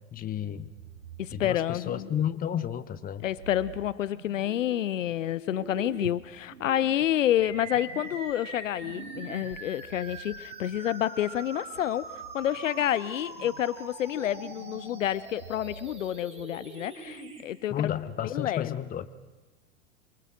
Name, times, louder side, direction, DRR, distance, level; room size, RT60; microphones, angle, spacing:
voice 1, 0.1-0.7 1.3-3.2 17.7-19.2, left 10 dB, 20° left, 15 dB, 1.0 m, -32 dB
sound 1, 0.5-2.8 3.2-5.2 5.5-10.5 11.4-12.4 12.8-13.8 14.1-16.1 16.4-16.6 17.1-17.2, right 8 dB, 80° right, 0.9 m, -47 dB
voice 2, 1.2-2.1 3.2-17.9 18.3-18.7, left 11 dB, 70° left, 19 dB, 0.7 m, -29 dB
sound 2, 7.4-17.4, right 3 dB, 15° right, 5.3 m, -43 dB
27.5 x 23.5 x 6.4 m, 1.2 s
figure-of-eight pair, 90°, 40 cm